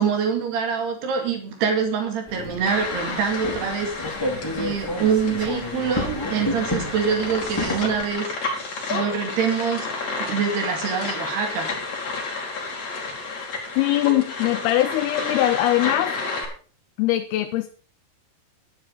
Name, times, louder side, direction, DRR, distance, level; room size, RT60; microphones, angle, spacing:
voice 1, 0.0-3.9 4.6-8.6 8.9-9.9 10.2-11.7, right 6 dB, 90° right, 4 dB, 4.4 m, -25 dB
sound 1, 2.3-8.1, left 1 dB, 10° left, 1.5 m, -31 dB
sound 2, 2.7-16.5, left 3 dB, 45° left, 3.8 m, -31 dB
voice 2, 13.8-16.2 17.0-17.7, left 15 dB, 80° left, 9 dB, 2.7 m, -21 dB
11.0 x 9.5 x 5.4 m, 0.41 s
omnidirectional pair, 4.5 m